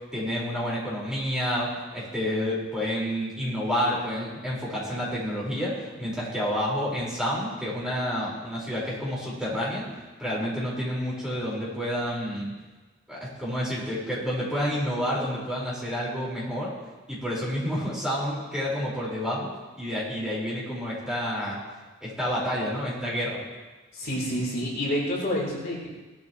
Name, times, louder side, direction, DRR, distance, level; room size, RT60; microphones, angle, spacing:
voice 1, 0.1-12.5 13.1-16.7 17.1-19.5 19.7-21.6 22.0-23.4, equal, 5° right, -7 dB, 5.1 m, -29 dB
voice 2, 23.9-25.9, equal, 50° left, -5 dB, 3.8 m, -28 dB
19.0 x 13.5 x 3.2 m, 1.2 s
head